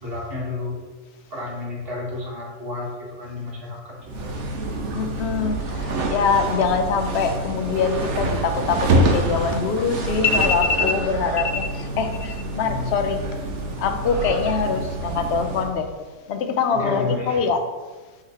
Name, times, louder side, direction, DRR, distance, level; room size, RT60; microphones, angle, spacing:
voice 1, 0.0-0.8 1.3-4.3 12.6-12.9 16.7-17.5, left 3 dB, 50° right, -4 dB, 1.8 m, -31 dB
sound 1, 4.0-15.8, right 2 dB, 65° right, 1.1 m, -26 dB
voice 2, 4.9-13.2 13.8-15.9 16.3-17.6, left 5 dB, 60° left, 6 dB, 0.9 m, -23 dB
6.3 x 3.8 x 4.2 m, 1.3 s
omnidirectional pair, 1.3 m